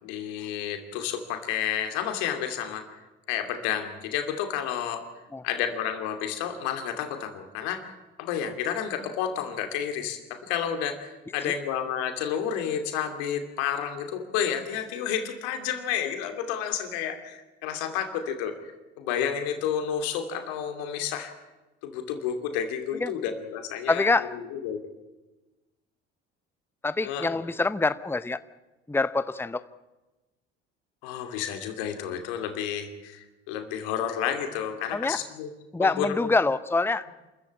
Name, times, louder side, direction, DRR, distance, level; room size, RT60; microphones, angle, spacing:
voice 1, 0.0-3.0 3.3-5.0 5.4-7.9 8.2-18.5 19.0-21.3 21.8-24.9 27.0-27.3 31.0-35.5 35.8-36.3, left 9 dB, 75° left, 6 dB, 2.8 m, -31 dB
voice 2, 23.9-24.3 26.8-28.4 28.9-29.6 34.9-35.2 35.7-37.1, left 3 dB, 5° left, 14 dB, 0.9 m, -25 dB
27.5 x 14.5 x 8.8 m, 1.1 s
hypercardioid pair, 55°, 32 cm